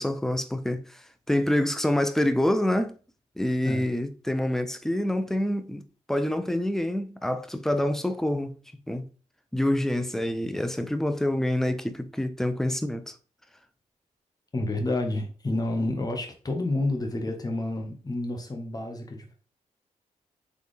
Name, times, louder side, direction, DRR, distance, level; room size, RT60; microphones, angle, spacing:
voice 1, 0.0-2.9 3.4-8.6 8.9-9.1 9.5-13.1, left 1 dB, 5° left, 0.6 m, -27 dB
voice 2, 14.5-19.3, left 2 dB, 30° left, 1.2 m, -29 dB
4.2 x 3.3 x 3.2 m
cardioid pair, 55°, 14 cm